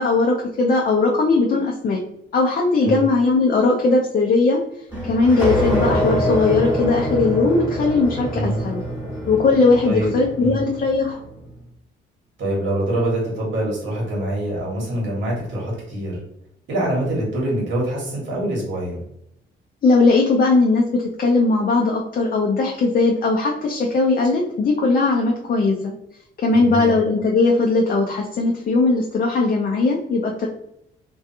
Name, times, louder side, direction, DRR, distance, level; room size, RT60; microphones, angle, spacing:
voice 1, 0.0-2.0 2.3-4.6 5.0-8.8 9.3-11.2 19.8-25.9 26.4-30.5, left 3 dB, 45° left, -1 dB, 0.5 m, -19 dB
sound 1, 4.9-11.3, equal, 10° right, 1.3 m, -25 dB
voice 2, 12.4-16.2 16.7-19.0 26.5-26.9, right 1 dB, 65° right, -4 dB, 1.2 m, -24 dB
2.6 x 2.2 x 2.6 m, 0.76 s
cardioid pair, 90°, 20 cm